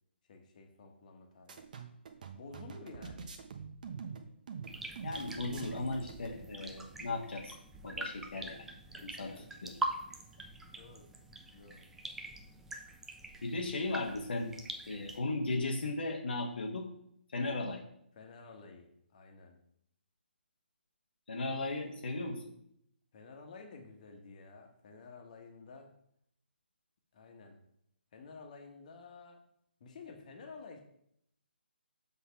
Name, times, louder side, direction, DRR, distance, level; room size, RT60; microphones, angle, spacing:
voice 1, 0.3-1.7 2.3-3.3 8.1-8.2 8.9-9.5 10.8-11.1 11.5-11.8 18.1-19.6 23.1-25.9 27.1-27.6 28.1-29.4 29.8-30.8, left 4 dB, 45° left, 3 dB, 1.4 m, -52 dB
sound 1, 1.5-6.4, right 6 dB, 45° right, 1.0 m, -45 dB
sound 2, 4.7-15.2, right 2 dB, 5° right, 0.5 m, -44 dB
voice 2, 5.0-7.5 7.8-8.7 9.0-9.3 9.6-9.7 13.4-14.5 14.9-16.9 17.3-17.8 21.3-22.4, left 2 dB, 65° left, 0 dB, 1.2 m, -36 dB
7.0 x 4.0 x 5.8 m, 0.72 s
figure-of-eight pair, 145°, 6 cm